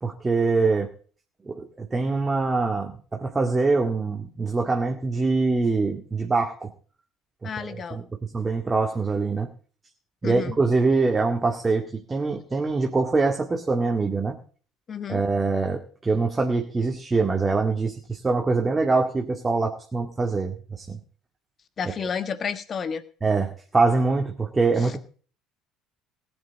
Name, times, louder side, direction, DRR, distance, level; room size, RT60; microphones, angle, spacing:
voice 1, 0.0-0.9 1.5-6.7 7.4-8.0 8.3-9.5 10.2-14.4 15.1-21.0 23.2-25.0, right 3 dB, 20° right, 2 dB, 2.1 m, -24 dB
voice 2, 7.4-8.0 10.2-10.6 14.9-15.2 21.8-23.0 24.8-24.9, left 6 dB, 35° left, 13 dB, 1.4 m, -31 dB
19.5 x 9.1 x 4.1 m, 0.41 s
figure-of-eight pair, 55°, 0 cm